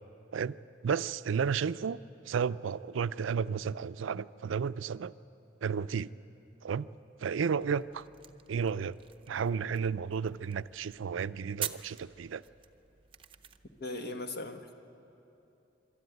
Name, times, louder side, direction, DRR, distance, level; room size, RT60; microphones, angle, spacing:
voice 1, 0.8-2.0 2.3-5.1 5.6-6.1 6.6-6.9 7.2-8.0 8.5-9.0 9.3-12.4, right 6 dB, 85° right, 15 dB, 0.4 m, -32 dB
sound 1, 7.6-13.9, right 9 dB, 30° right, 0.6 m, -46 dB
voice 2, 13.8-14.7, left 2 dB, 50° left, 5 dB, 1.3 m, -38 dB
25.5 x 13.0 x 9.3 m, 2.9 s
head